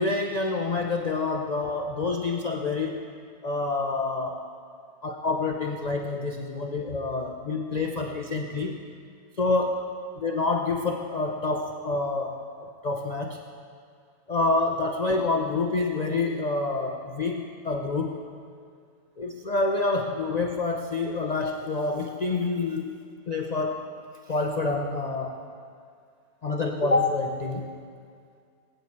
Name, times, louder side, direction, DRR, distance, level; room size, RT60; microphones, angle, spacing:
voice 1, 0.0-3.0 3.4-4.4 5.0-8.8 9.4-9.8 10.1-13.4 14.3-18.2 19.2-23.0 23.3-23.9 24.3-25.4 26.4-27.7, left 3 dB, 50° left, 2 dB, 0.5 m, -27 dB
19.5 x 9.1 x 4.2 m, 2.2 s
omnidirectional pair, 1.5 m